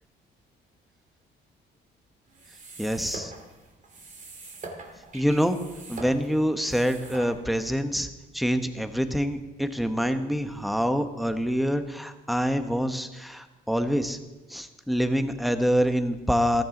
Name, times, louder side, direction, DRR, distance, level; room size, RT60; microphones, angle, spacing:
sound 1, 2.3-7.7, right 2 dB, 40° right, 2.6 m, -43 dB
voice 1, 2.8-3.3 5.1-5.6 5.9-8.1 8.3-14.2 14.5-16.6, equal, ahead, 8 dB, 1.2 m, -26 dB
14.5 x 13.5 x 3.9 m, 1.1 s
supercardioid pair, 80°, 21 cm